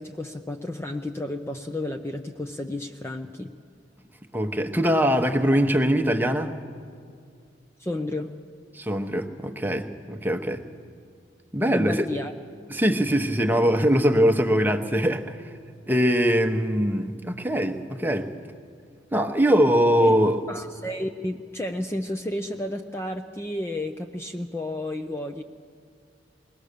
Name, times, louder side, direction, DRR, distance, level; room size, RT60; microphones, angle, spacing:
voice 1, 0.0-3.5 5.3-5.4 7.8-8.3 11.7-12.3 20.0-20.2 20.5-25.4, left 1 dB, 15° left, 0.6 m, -32 dB
voice 2, 4.3-6.5 8.7-10.6 11.5-12.1 12.7-15.4 15.9-18.3 19.1-20.4, equal, 10° right, 0.9 m, -22 dB
21.5 x 18.0 x 6.7 m
head